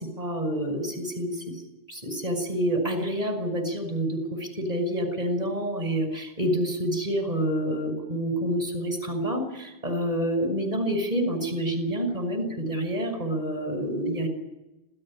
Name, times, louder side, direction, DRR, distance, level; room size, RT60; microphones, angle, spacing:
voice 1, 0.2-1.4 1.9-14.3, equal, 40° right, 7 dB, 5.9 m, -28 dB
27.0 x 17.0 x 8.8 m, 0.95 s
omnidirectional pair, 1.1 m